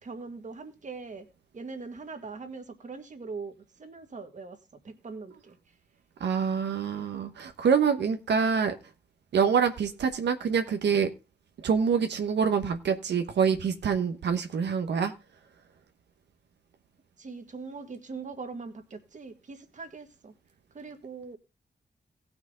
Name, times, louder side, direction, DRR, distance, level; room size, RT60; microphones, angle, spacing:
voice 1, 0.0-1.3 1.5-4.6 4.8-5.7 17.2-20.3 20.7-21.4, right 4 dB, 45° right, 6 dB, 1.9 m, -41 dB
voice 2, 6.2-8.7 9.3-11.1 11.6-15.1, right 6 dB, 85° right, 6 dB, 1.1 m, -26 dB
17.5 x 6.0 x 3.8 m, 0.29 s
wide cardioid pair, 135°, 17 cm